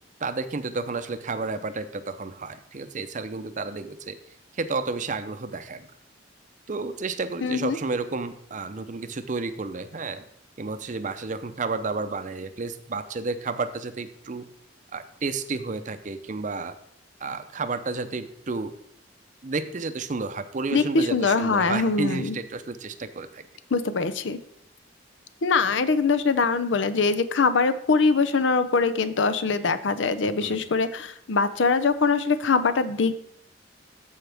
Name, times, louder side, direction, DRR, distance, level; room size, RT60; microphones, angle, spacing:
voice 1, 0.2-4.2 4.5-5.9 6.7-10.3 10.6-14.4 14.9-16.8 17.2-18.7 19.4-23.4 30.4-30.6, right 3 dB, 45° right, 11 dB, 0.6 m, -31 dB
voice 2, 7.4-7.8 20.7-22.4 23.7-24.4 25.4-33.2, left 4 dB, 80° left, 12 dB, 0.6 m, -23 dB
14.0 x 4.8 x 3.4 m, 0.69 s
head